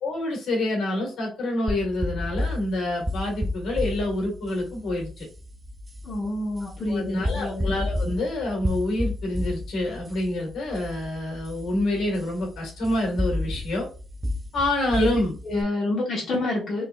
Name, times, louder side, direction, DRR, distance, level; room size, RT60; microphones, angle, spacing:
voice 1, 0.0-5.3 6.6-13.9 14.5-15.4, left 1 dB, 75° left, 0 dB, 1.8 m, -27 dB
sound 1, 1.7-15.6, left 1 dB, 15° right, 0.6 m, -32 dB
voice 2, 6.0-7.7 14.9-15.1 15.4-16.8, left 2 dB, 50° left, -4 dB, 1.5 m, -27 dB
3.8 x 3.4 x 2.5 m, 0.35 s
cardioid pair, 90°, 0 cm